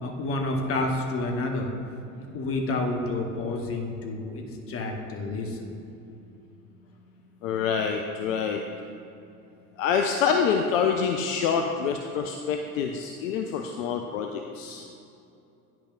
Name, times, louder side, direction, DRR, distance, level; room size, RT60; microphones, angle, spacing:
voice 1, 0.0-1.7 2.2-5.7, left 2 dB, 30° left, 2 dB, 1.0 m, -29 dB
voice 2, 7.4-8.6 9.8-14.8, left 6 dB, 60° left, 4 dB, 0.5 m, -26 dB
9.9 x 6.0 x 2.4 m, 2.7 s
figure-of-eight pair, 70°, 45 cm